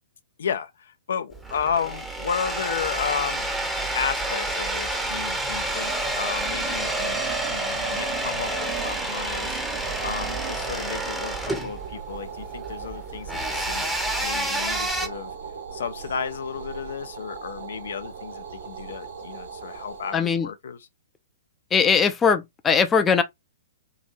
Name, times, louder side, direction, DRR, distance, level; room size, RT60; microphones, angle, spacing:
voice 1, 0.4-3.5 3.9-7.2 7.5-9.6 10.0-13.9 14.1-15.3 15.7-20.9, left 7 dB, 55° left, 0.6 m, -32 dB
sound 1, 1.3-15.1, right 2 dB, 5° right, 0.9 m, -29 dB
sound 2, 4.9-11.6, right 11 dB, 35° right, 1.0 m, -42 dB
sound 3, 9.8-20.2, right 6 dB, 60° right, 1.4 m, -39 dB
voice 2, 20.1-20.5 21.7-23.2, left 6 dB, 15° left, 0.5 m, -20 dB
4.7 x 2.7 x 2.6 m
figure-of-eight pair, 115°, 0 cm